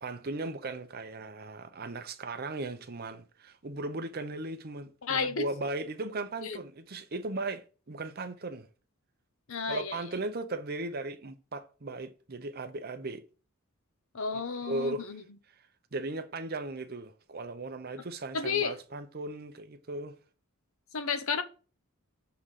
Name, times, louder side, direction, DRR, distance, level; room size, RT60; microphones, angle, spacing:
voice 1, 0.0-8.7 9.7-13.2 14.6-15.1 15.9-20.2, right 2 dB, 45° right, 0.7 m, -37 dB
voice 2, 5.0-5.4 6.4-6.6 9.5-10.0 14.1-15.2 18.3-18.8 20.9-21.4, left 5 dB, 65° left, 0.9 m, -31 dB
7.0 x 3.7 x 6.4 m
head